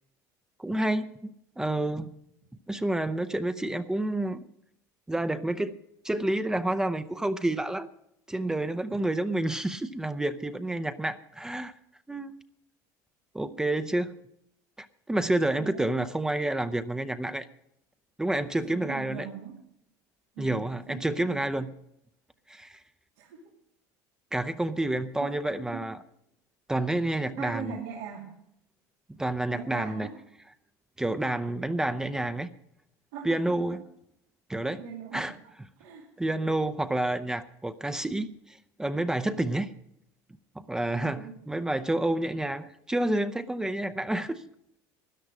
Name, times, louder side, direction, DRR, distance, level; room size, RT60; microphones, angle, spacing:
voice 1, 0.6-2.1 2.7-4.4 5.1-5.7 6.0-7.9 8.3-11.7 12.1-12.4 13.3-14.1 14.8-17.5 18.2-19.3 20.4-21.7 22.5-22.8 24.3-26.0 26.7-27.8 29.2-30.1 31.0-32.5 33.2-33.8 34.5-34.8 35.1-35.7 36.2-39.7 40.6-44.4, right 1 dB, 10° right, 11 dB, 0.6 m, -29 dB
voice 2, 18.6-19.6 20.4-21.4 23.2-23.5 25.2-25.9 27.4-28.3 29.5-30.2 33.1-33.8 34.7-35.3 35.8-36.1 40.9-41.3, right 7 dB, 90° right, -3 dB, 2.6 m, -41 dB
13.5 x 10.5 x 6.1 m, 0.76 s
cardioid pair, 125°, 8 cm